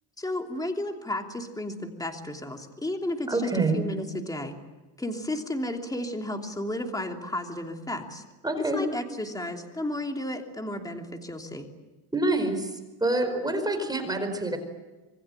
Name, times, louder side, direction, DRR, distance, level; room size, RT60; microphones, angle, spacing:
voice 1, 0.2-4.6 5.0-8.2 8.6-11.7, left 1 dB, 10° left, 3 dB, 3.0 m, -33 dB
voice 2, 3.3-3.8 8.4-8.8 12.1-12.7 13.0-14.6, right 2 dB, 10° right, 6 dB, 4.9 m, -26 dB
27.0 x 22.5 x 9.1 m, 1.2 s
cardioid pair, 135°, 45 cm